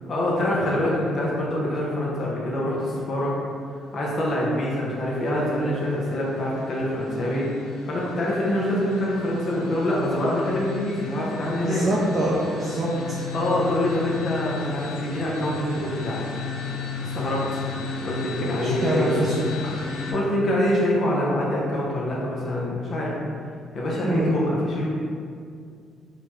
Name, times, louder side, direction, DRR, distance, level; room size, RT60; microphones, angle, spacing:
voice 1, 0.0-3.3 3.9-11.8 13.3-16.2 17.0-17.6 18.0-19.3 20.1-23.1 23.7-24.9, left 1 dB, 55° left, -4 dB, 0.8 m, -25 dB
sound 1, 4.6-20.1, left 5 dB, 90° left, 0.4 m, -35 dB
voice 2, 11.6-13.2 18.6-19.3 19.6-19.7 24.0-24.3, right 1 dB, 35° right, -7 dB, 0.5 m, -25 dB
3.0 x 2.2 x 3.0 m, 2.2 s
hypercardioid pair, 50°, 0 cm